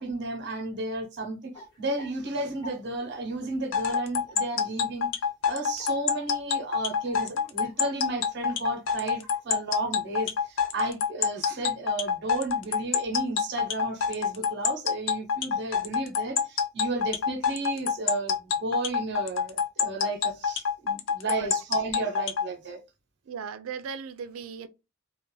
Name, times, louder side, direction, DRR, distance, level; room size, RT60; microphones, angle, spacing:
voice 1, 0.0-1.5 1.8-5.1 5.5-22.8, right 2 dB, 55° right, 0.7 m, -33 dB
sound 1, 1.5-2.8 3.0-3.1 3.5-3.8 4.1-4.8 5.1-5.2 5.5-9.4 9.9-10.0 10.3-10.6, right 1 dB, 20° left, 0.7 m, -50 dB
sound 2, 3.7-22.5, left 7 dB, 65° left, 0.4 m, -26 dB
voice 2, 21.3-21.6 23.3-24.7, right 6 dB, 85° right, 0.4 m, -37 dB
2.4 x 2.1 x 3.1 m
head